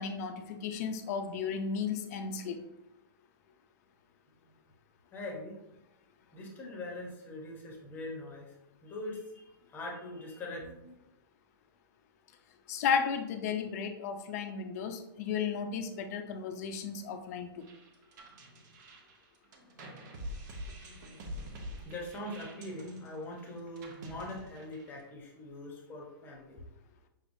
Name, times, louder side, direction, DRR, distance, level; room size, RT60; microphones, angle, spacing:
voice 1, 0.0-2.6 12.7-17.5, left 6 dB, 40° left, 6 dB, 0.5 m, -34 dB
voice 2, 5.1-5.6 6.3-8.5 8.8-10.9 20.8-26.6, left 1 dB, 15° left, -1 dB, 0.8 m, -42 dB
sound 1, 17.6-25.1, equal, 50° right, 0.8 m, -46 dB
5.4 x 3.4 x 2.6 m, 0.89 s
hypercardioid pair, 155°, 13 cm